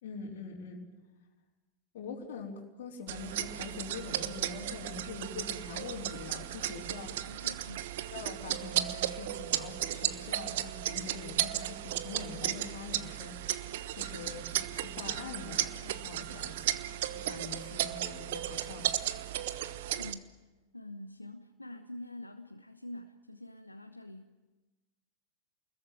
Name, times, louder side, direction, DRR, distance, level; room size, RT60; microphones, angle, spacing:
voice 1, 0.0-0.9 1.9-7.5 8.1-16.8 17.1-19.2, left 5 dB, 55° left, -6 dB, 4.1 m, -44 dB
sound 1, 3.1-20.1, right 13 dB, 55° right, 1.2 m, -35 dB
voice 2, 7.3-7.9 20.0-20.3 20.7-24.3, left 1 dB, 85° left, 5 dB, 1.2 m, -46 dB
29.0 x 21.5 x 9.3 m, 1.2 s
figure-of-eight pair, 90°, 0 cm